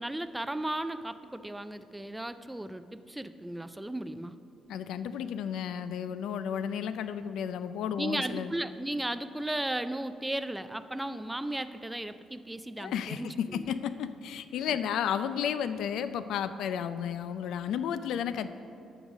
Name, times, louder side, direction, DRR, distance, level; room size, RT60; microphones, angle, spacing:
voice 1, 0.0-4.4 8.0-13.7, right 1 dB, 10° right, 11 dB, 0.3 m, -35 dB
voice 2, 4.7-8.5 12.8-18.5, left 8 dB, 80° left, 12 dB, 0.3 m, -33 dB
12.0 x 4.0 x 6.1 m, 2.6 s
cardioid pair, 90°, 0 cm